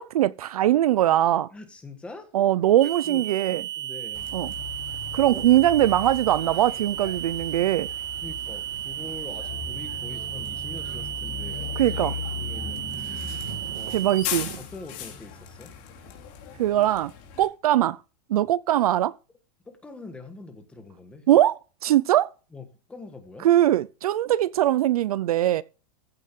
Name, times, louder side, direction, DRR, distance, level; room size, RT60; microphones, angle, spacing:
voice 1, 0.0-1.5 2.3-3.6 4.3-4.5 5.1-7.9 11.8-12.1 13.9-14.5 16.6-17.1 17.4-18.0 18.3-19.1 21.3-22.3 23.4-25.6, right 13 dB, 60° right, 0.6 m, -21 dB
voice 2, 1.5-2.3 3.0-4.3 5.3-5.4 8.2-12.0 12.4-14.0 14.6-15.7 19.6-21.3 22.5-23.5, left 3 dB, 5° left, 1.4 m, -44 dB
sound 1, 2.8-14.2, right 13 dB, 25° right, 1.1 m, -34 dB
Bus, 4.1-17.4, left 7 dB, 35° left, 3.2 m, -38 dB
sound 2, 8.2-14.7, right 9 dB, 85° right, 2.9 m, -47 dB
15.0 x 7.6 x 3.7 m
supercardioid pair, 180°, 21 cm